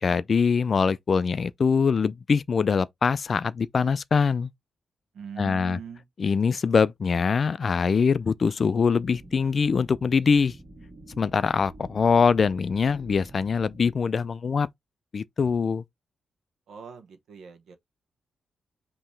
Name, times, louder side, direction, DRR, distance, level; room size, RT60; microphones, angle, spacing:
voice 1, 0.0-4.5 5.4-5.8 6.2-10.6 11.2-14.7 15.1-15.8, left 5 dB, 45° left, 0.3 m, -23 dB
voice 2, 5.1-6.1 16.7-17.8, right 7 dB, 80° right, 1.0 m, -41 dB
sound 1, 9.0-13.9, right 1 dB, 25° right, 1.7 m, -48 dB
5.5 x 2.9 x 3.1 m
cardioid pair, 125°, 0 cm